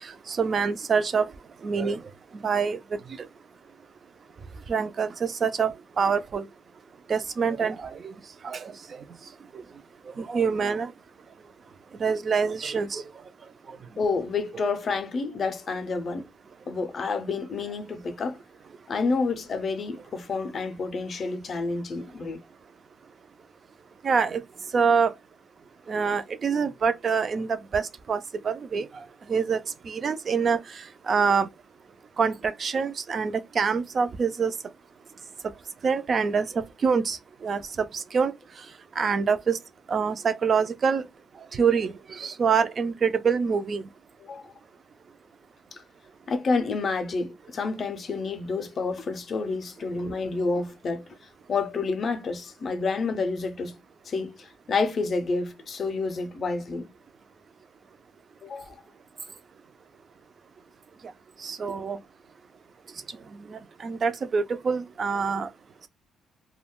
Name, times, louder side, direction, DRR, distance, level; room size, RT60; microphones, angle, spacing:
voice 1, 0.3-1.3 1.6-2.0 2.4-2.8 4.7-5.7 6.0-6.4 7.1-8.1 8.4-8.6 10.2-10.9 12.0-13.0 24.0-24.4 24.7-25.1 25.9-28.2 28.4-28.9 29.3-29.6 29.9-30.6 31.1-31.5 32.2-34.5 35.8-36.5 36.8-37.2 37.4-37.6 37.9-38.3 39.0-39.6 39.9-41.0 41.5-43.8 61.4-62.0 63.5-65.5, right 5 dB, 35° right, 0.3 m, -25 dB
voice 2, 14.0-16.3 16.7-18.4 18.9-22.4 44.2-44.5 45.7-45.8 46.3-51.0 51.5-53.8 54.1-56.9 58.4-58.8, left 4 dB, 35° left, 0.4 m, -29 dB
2.3 x 2.2 x 3.5 m
cardioid pair, 160°, 0 cm